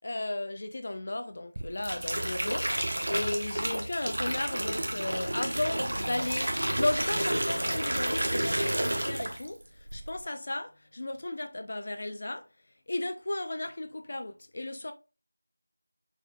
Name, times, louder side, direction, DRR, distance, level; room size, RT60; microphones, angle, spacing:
voice 1, 0.0-6.5 6.8-9.6 9.9-12.5 12.9-14.9, left 2 dB, 35° left, 0.5 m, -34 dB
sound 1, 1.6-9.6 9.9-10.2, right 1 dB, 65° right, 1.1 m, -31 dB
6.2 x 3.5 x 2.3 m
figure-of-eight pair, 175°, 0 cm